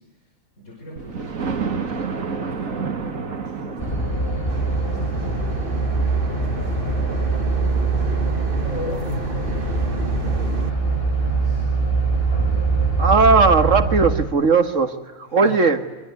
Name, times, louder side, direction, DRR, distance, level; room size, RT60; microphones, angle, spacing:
voice 1, 0.0-7.4 8.6-11.7 15.2-15.6, equal, 65° left, 0 dB, 6.0 m, -39 dB
Thunder, 1.0-10.7 11.2-11.3 11.8-11.9 12.1-12.2, right 5 dB, 85° right, 2.3 m, -32 dB
sound 1, 3.8-14.2, right 3 dB, 45° left, 5.1 m, -23 dB
sound 2, 4.5-10.7, right 4 dB, 45° right, 1.4 m, -33 dB
voice 2, 13.0-15.8, right 4 dB, 65° right, 9 dB, 2.1 m, -17 dB
25.0 x 24.5 x 9.5 m, 1.1 s
omnidirectional pair, 1.4 m